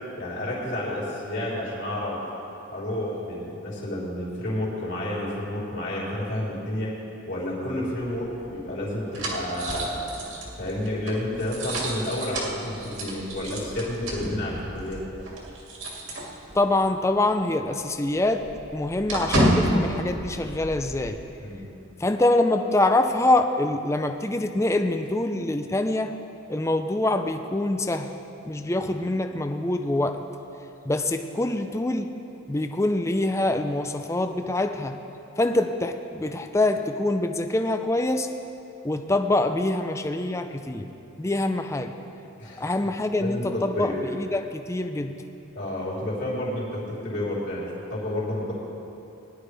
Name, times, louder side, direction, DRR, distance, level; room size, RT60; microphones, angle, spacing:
voice 1, 0.2-2.2 2.7-6.9 7.3-10.1 10.6-15.0 21.4-21.6 28.9-29.1 42.4-42.7 43.2-43.9 45.5-48.5, left 1 dB, 55° left, -7 dB, 3.6 m, -30 dB
sound 1, 8.0-16.8 17.1-17.3 17.6-21.1, equal, 65° right, 2.4 m, -30 dB
voice 2, 16.5-21.2 22.0-26.1 26.5-28.1 28.5-30.3 30.9-32.1 32.5-35.0 35.4-38.3 38.8-40.9 41.2-42.0 42.6-45.2, left 2 dB, 15° left, 7 dB, 0.4 m, -25 dB
19.5 x 11.0 x 3.4 m, 2.8 s
head